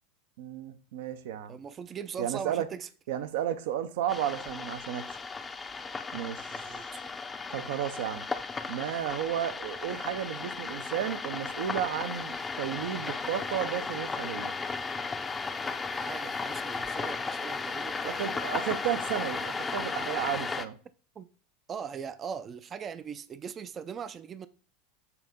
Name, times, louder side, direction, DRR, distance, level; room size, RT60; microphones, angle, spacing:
voice 1, 0.4-1.6 2.2-2.7 3.1-5.0 6.1-6.8 7.5-8.2 8.7-14.5 18.0-20.8, right 10 dB, 75° right, 0.6 m, -33 dB
voice 2, 1.5-2.9 6.1-7.0 15.9-18.3 21.2-21.3 21.7-24.5, right 7 dB, 30° right, 0.4 m, -40 dB
sound 1, 4.1-20.6, left 4 dB, 20° left, 0.5 m, -35 dB
7.0 x 2.7 x 5.2 m
supercardioid pair, 105°, 0 cm